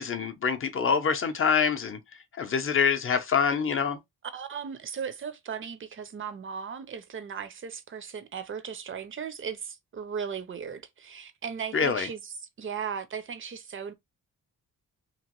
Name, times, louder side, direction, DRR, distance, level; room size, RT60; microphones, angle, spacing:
voice 1, 0.0-2.0 2.4-4.0 11.7-12.1, left 6 dB, 35° left, 0.6 m, -25 dB
voice 2, 4.3-13.9, right 7 dB, 35° right, 0.5 m, -37 dB
3.0 x 2.9 x 2.9 m
wide cardioid pair, 165°, 37 cm